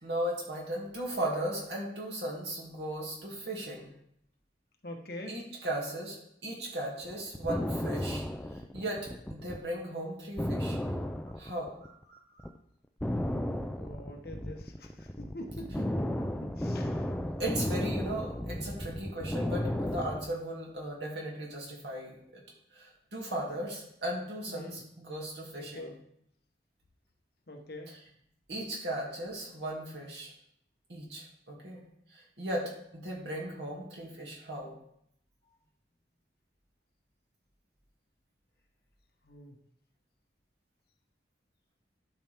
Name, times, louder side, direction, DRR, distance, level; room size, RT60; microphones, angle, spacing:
voice 1, 0.0-3.9 5.3-8.2 8.5-10.8 11.3-12.2 17.4-22.4 22.7-26.0 27.9-28.0 28.5-30.3 30.9-31.8 32.1-34.7, right 1 dB, 75° right, -3 dB, 2.5 m, -37 dB
voice 2, 4.8-5.4 13.7-17.1 24.5-24.8 25.6-25.9 27.5-27.9 39.2-39.6, left 1 dB, 55° left, 3 dB, 1.2 m, -44 dB
sound 1, 7.1-9.6 9.9-10.0 10.4-12.0 12.4-12.6 13.0-20.3, left 1 dB, 5° left, 0.4 m, -34 dB
12.0 x 5.7 x 3.6 m, 0.72 s
head